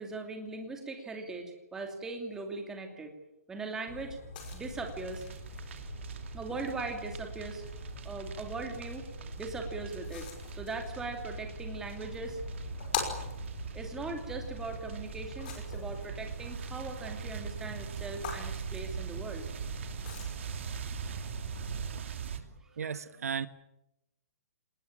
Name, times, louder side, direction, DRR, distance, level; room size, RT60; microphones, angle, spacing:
voice 1, 0.0-3.1 3.5-4.2 4.5-5.2 6.3-7.6 8.0-9.0 9.4-12.4 13.7-19.5 22.6-22.7, right 3 dB, 5° right, 3 dB, 2.7 m, -40 dB
sound 1, 3.9-22.0, left 5 dB, 35° left, 5.8 m, -43 dB
sound 2, 4.4-22.4, right 8 dB, 55° right, 2.9 m, -41 dB
voice 2, 22.3-23.5, right 7 dB, 75° right, 13 dB, 1.4 m, -36 dB
26.5 x 20.0 x 9.0 m, 0.90 s
hypercardioid pair, 170°, 8 cm